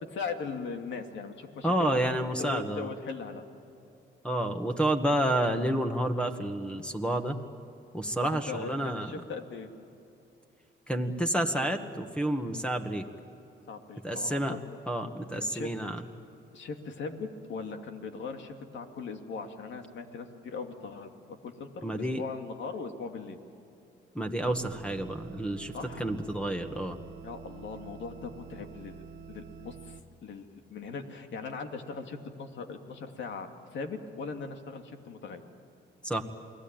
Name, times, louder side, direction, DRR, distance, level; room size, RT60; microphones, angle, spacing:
voice 1, 0.0-3.4 8.2-9.7 13.7-14.6 15.3-15.7 16.5-23.4 25.7-26.1 27.2-35.4, left 4 dB, 70° left, 5 dB, 2.6 m, -39 dB
voice 2, 1.6-2.9 4.2-7.4 7.9-9.1 10.9-13.1 14.0-14.6 14.9-16.0 21.8-22.2 24.1-25.7 26.0-27.0 36.0-36.2, right 1 dB, 5° left, 5 dB, 1.9 m, -29 dB
sound 1, 24.4-30.0, right 6 dB, 65° right, 1.7 m, -47 dB
29.0 x 20.0 x 9.1 m, 2.8 s
cardioid pair, 90°, 20 cm